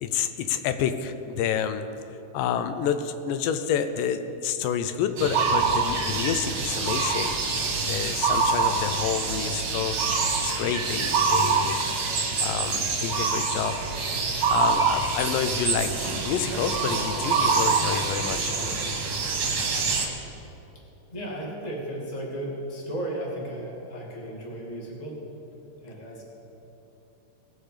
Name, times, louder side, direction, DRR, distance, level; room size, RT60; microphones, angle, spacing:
voice 1, 0.0-1.9 2.3-11.8 12.4-13.9 14.5-18.6, left 8 dB, 85° left, 9 dB, 2.3 m, -29 dB
sound 1, 5.2-20.1, right 4 dB, 50° right, 1.7 m, -25 dB
voice 2, 21.1-25.2 25.8-26.2, right 1 dB, 15° left, -3 dB, 1.6 m, -34 dB
19.0 x 7.3 x 5.0 m, 2.9 s
omnidirectional pair, 3.8 m